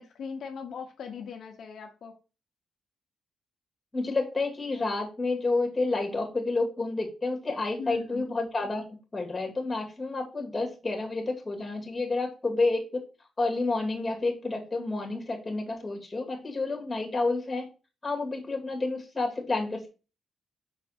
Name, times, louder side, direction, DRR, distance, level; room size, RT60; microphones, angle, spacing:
voice 1, 0.0-2.1 7.8-8.2, left 6 dB, 65° left, 2 dB, 1.0 m, -39 dB
voice 2, 3.9-8.8 9.1-13.0 13.4-17.7 18.0-19.9, left 3 dB, 15° left, 1 dB, 2.2 m, -29 dB
6.0 x 4.1 x 4.4 m, 0.31 s
cardioid pair, 125°, 0 cm